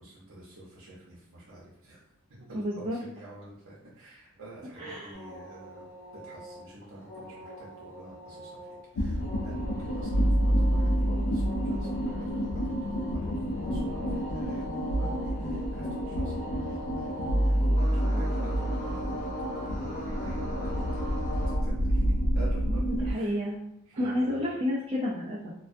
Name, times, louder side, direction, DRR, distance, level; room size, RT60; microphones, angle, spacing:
voice 1, 0.0-2.0 2.3-5.9 6.2-22.0 22.3-22.8 23.1-23.5 23.9-24.4, right 1 dB, 80° right, -7 dB, 0.7 m, -48 dB
voice 2, 2.5-3.0 4.8-5.2 18.1-18.2 22.6-23.6 23.9-25.5, left 1 dB, 25° right, -8 dB, 0.3 m, -31 dB
sound 1, 5.1-21.5, equal, 35° left, 0.7 m, -40 dB
sound 2, 8.9-23.1, equal, 75° left, 0.4 m, -28 dB
2.2 x 2.2 x 2.5 m, 0.79 s
head